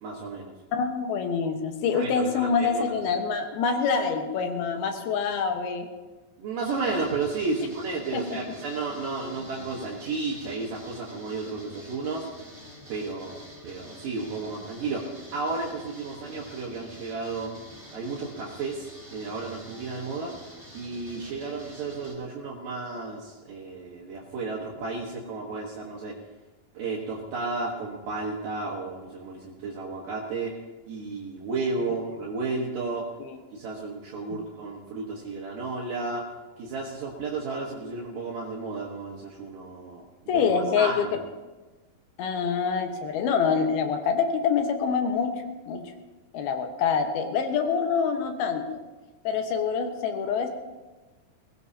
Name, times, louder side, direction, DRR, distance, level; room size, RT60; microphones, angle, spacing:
voice 1, 0.0-0.5 1.9-2.9 6.4-12.3 12.9-13.4 13.6-15.0 15.3-17.5 17.9-20.3 20.7-26.1 26.7-30.5 30.9-33.0 33.5-36.2 36.6-40.0 40.3-41.1, right 3 dB, 65° right, -3 dB, 2.9 m, -33 dB
voice 2, 0.7-5.9 8.1-8.4 33.2-33.4 40.3-41.2 42.2-45.3 45.7-45.8 46.3-48.8 49.2-50.5, left 6 dB, 85° left, 5 dB, 3.2 m, -26 dB
sound 1, 6.6-22.2, equal, 25° right, 5.4 m, -47 dB
21.5 x 17.0 x 2.8 m, 1.2 s
omnidirectional pair, 4.3 m